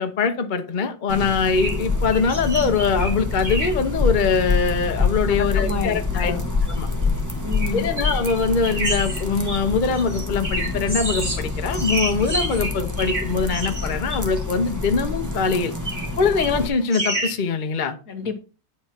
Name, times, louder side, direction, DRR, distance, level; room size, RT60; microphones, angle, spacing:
voice 1, 0.0-6.3 6.7-6.9 7.7-15.7 16.2-18.0, left 5 dB, 40° left, 0.8 m, -23 dB
sound 1, 1.1-16.7, left 3 dB, 10° right, 1.3 m, -26 dB
sound 2, 1.5-1.8 2.1-3.1 3.4-3.7 4.9-5.0 5.5-5.7 6.7-6.8 7.5-7.7 8.0-11.4 11.7-14.2 14.8-14.9 15.8-16.1 16.4-17.4, right 1 dB, 30° right, 2.2 m, -29 dB
voice 2, 5.3-6.4 7.4-7.9 18.1-18.4, left 4 dB, 55° left, 1.5 m, -29 dB
10.0 x 4.3 x 5.9 m
omnidirectional pair, 1.9 m